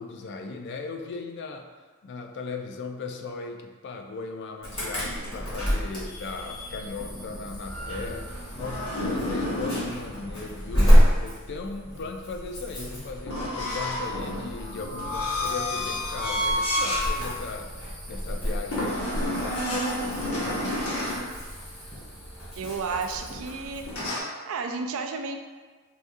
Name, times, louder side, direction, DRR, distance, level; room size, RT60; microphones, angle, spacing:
voice 1, 0.0-1.7 2.0-19.9 20.3-21.1, left 4 dB, 55° left, 4 dB, 0.4 m, -38 dB
Insect / Alarm, 4.6-24.1, equal, 25° left, 1.5 m, -29 dB
sound 1, 7.7-10.0 13.3-17.1 17.5-17.7 18.7-21.3 23.9-24.2, left 1 dB, 80° left, 0.9 m, -30 dB
voice 2, 22.6-23.9 24.4-25.4, right 4 dB, 65° right, 6 dB, 0.4 m, -32 dB
4.8 x 2.4 x 2.6 m, 1.4 s
head